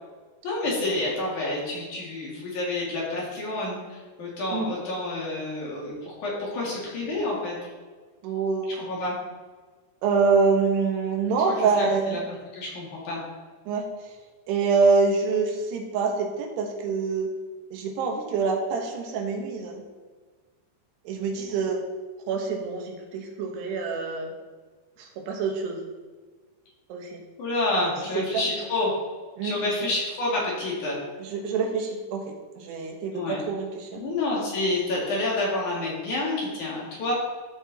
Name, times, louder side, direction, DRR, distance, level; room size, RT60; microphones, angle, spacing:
voice 1, 0.4-7.7 8.8-9.2 11.5-12.2 12.5-13.2 27.4-28.9 29.4-31.0 33.1-33.4 34.0-37.1, left 2 dB, 50° left, -4 dB, 3.6 m, -29 dB
voice 2, 8.2-8.9 10.0-12.2 13.7-13.8 14.5-17.3 17.7-19.8 21.1-21.8 22.3-24.3 25.0-25.8 26.9-27.2 27.8-27.9 28.3-28.4 29.4-29.9 31.2-32.2 32.6-34.0, right 4 dB, 85° right, 2 dB, 3.4 m, -26 dB
13.5 x 5.8 x 4.2 m, 1.4 s
omnidirectional pair, 4.7 m